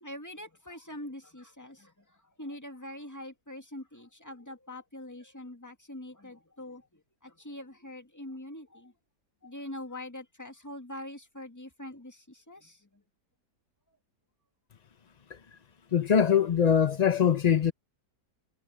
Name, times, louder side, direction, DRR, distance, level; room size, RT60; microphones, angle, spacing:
voice 1, 0.0-8.9 9.4-13.0 13.9-14.0, left 1 dB, 10° left, 1.9 m, -44 dB
voice 2, 15.9-17.7, left 8 dB, 70° left, 0.3 m, -23 dB
omnidirectional pair, 1.8 m